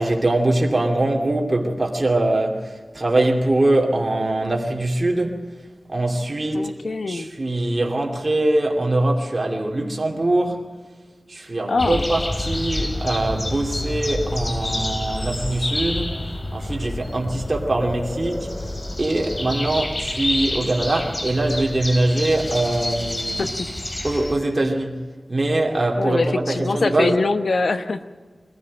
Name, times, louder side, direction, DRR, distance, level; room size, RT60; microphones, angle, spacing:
voice 1, 0.0-5.4 5.9-6.7 7.1-10.7 11.3-16.2 16.5-18.5 19.0-23.4 24.0-25.0 25.3-27.2, right 2 dB, 40° right, 2.7 m, -22 dB
voice 2, 6.5-7.3 11.7-12.0 23.4-23.7 26.0-28.1, left 3 dB, 80° left, 1.0 m, -23 dB
sound 1, 11.8-24.3, left 1 dB, 45° left, 3.3 m, -28 dB
22.0 x 15.0 x 7.7 m
wide cardioid pair, 60°, 0 cm